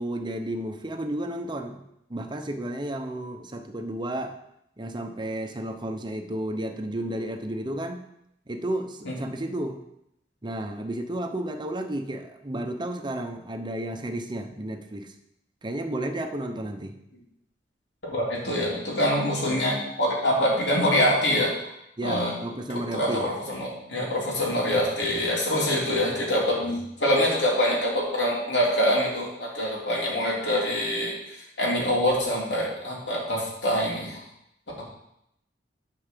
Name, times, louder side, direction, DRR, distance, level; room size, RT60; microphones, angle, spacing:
voice 1, 0.0-1.8 2.1-4.3 4.8-8.1 8.5-9.8 10.4-15.1 15.6-17.0 22.0-23.3, right 1 dB, 25° right, 6 dB, 0.8 m, -32 dB
voice 2, 18.1-21.5 22.0-22.3 22.7-34.2 34.8-34.9, equal, 85° left, -4 dB, 3.0 m, -25 dB
9.3 x 4.6 x 6.8 m, 0.79 s
head